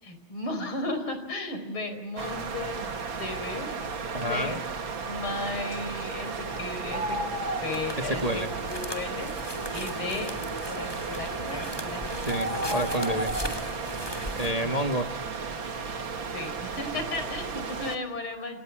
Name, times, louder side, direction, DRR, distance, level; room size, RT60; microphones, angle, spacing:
voice 1, 0.0-3.7 4.3-4.6 5.0-7.2 7.6-9.3 9.7-10.3 10.7-12.3 14.6-14.7 16.3-18.6, left 2 dB, 85° left, 9 dB, 5.5 m, -35 dB
sound 1, 2.2-18.0, right 4 dB, 70° right, 2.9 m, -34 dB
voice 2, 4.1-4.6 8.0-8.5 12.2-13.3 14.3-15.1, right 1 dB, 20° right, 5 dB, 1.4 m, -29 dB
sound 2, 7.7-14.5, left 1 dB, 10° left, 3.0 m, -38 dB
29.5 x 29.0 x 6.1 m, 0.85 s
omnidirectional pair, 2.2 m